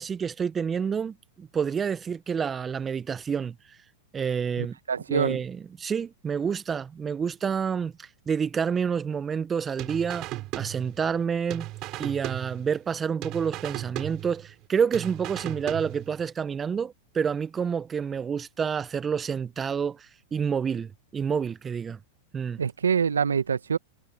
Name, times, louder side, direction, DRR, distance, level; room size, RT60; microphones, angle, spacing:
voice 1, 0.0-3.5 4.1-4.8 5.1-10.3 10.6-11.7 12.0-22.0 22.3-22.6, right 6 dB, 20° right, 1.3 m, -28 dB
voice 2, 4.6-5.4 22.6-23.8, right 6 dB, 85° right, 1.2 m, -25 dB
sound 1, 9.8-11.2 11.5-12.9 13.2-14.6 14.9-16.3, right 18 dB, 45° right, 6.2 m, -36 dB
hypercardioid pair, 100°, 0 cm